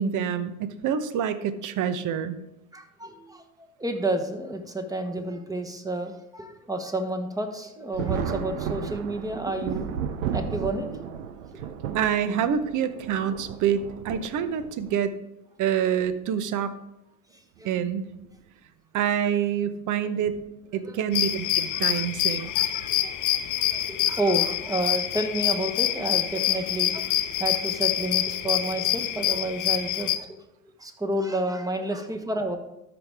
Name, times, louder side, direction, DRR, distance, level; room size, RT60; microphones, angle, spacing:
voice 1, 0.0-2.4 11.9-15.1 15.6-16.7 17.6-18.1 18.9-20.4 20.7-22.7, right 8 dB, 45° right, 13 dB, 0.9 m, -27 dB
voice 2, 2.7-9.9 10.3-11.2 17.3-17.7 20.8-21.0 21.7-22.0 22.5-30.4 30.8-32.6, right 1 dB, 10° right, 7 dB, 1.2 m, -31 dB
Thunder, 7.9-15.0 16.0-16.1 17.6-17.8 18.2-18.3 20.2-20.4 21.1-21.5, right 8 dB, 80° right, 0.8 m, -34 dB
sound 1, 21.1-30.2, left 12 dB, 45° left, 0.8 m, -26 dB
13.0 x 5.1 x 3.5 m, 0.88 s
hypercardioid pair, 80°, 42 cm